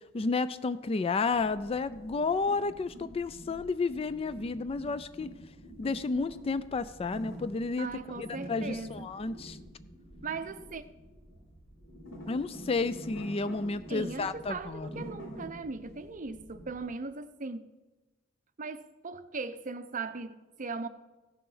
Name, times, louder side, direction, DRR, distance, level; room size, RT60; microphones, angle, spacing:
voice 1, 0.1-5.3 5.8-7.9 8.2-9.6 12.3-14.9, left 4 dB, 30° left, 0.3 m, -31 dB
sound 1, 1.3-16.8, equal, 85° left, 4.1 m, -47 dB
voice 2, 7.8-9.1 10.2-10.8 13.9-17.6 18.6-20.9, right 4 dB, 40° right, 0.7 m, -38 dB
15.5 x 6.8 x 5.6 m
head